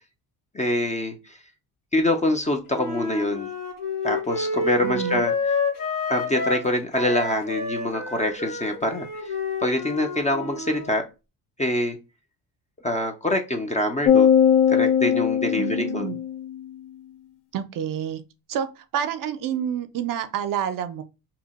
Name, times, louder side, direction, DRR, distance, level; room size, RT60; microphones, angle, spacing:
voice 1, 0.5-1.4 1.9-3.5 4.0-5.3 6.1-9.3 9.6-11.0 11.6-12.0 12.8-14.3 14.7-16.1, left 1 dB, 20° left, 0.4 m, -25 dB
Wind instrument woodwind instrument, 2.7-6.7 6.9-10.9, left 3 dB, 55° left, 1.3 m, -29 dB
voice 2, 4.8-5.3 15.6-16.2 17.5-18.2 18.5-21.0, right 9 dB, 55° right, 0.5 m, -28 dB
sound 1, 14.0-16.6, left 8 dB, 70° left, 0.5 m, -19 dB
2.8 x 2.1 x 3.9 m
cardioid pair, 100°, 40 cm